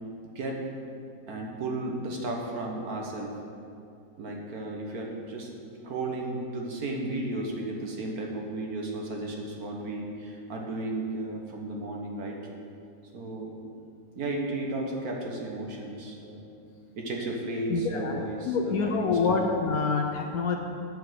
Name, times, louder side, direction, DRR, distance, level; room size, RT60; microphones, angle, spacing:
voice 1, 1.3-3.3 4.2-5.5 5.8-12.4 13.1-13.6 14.1-16.4 17.0-19.4, right 2 dB, 55° right, 0 dB, 1.6 m, -34 dB
voice 2, 17.7-20.6, left 4 dB, 65° left, 3 dB, 1.0 m, -27 dB
9.9 x 5.1 x 8.0 m, 2.5 s
omnidirectional pair, 1.9 m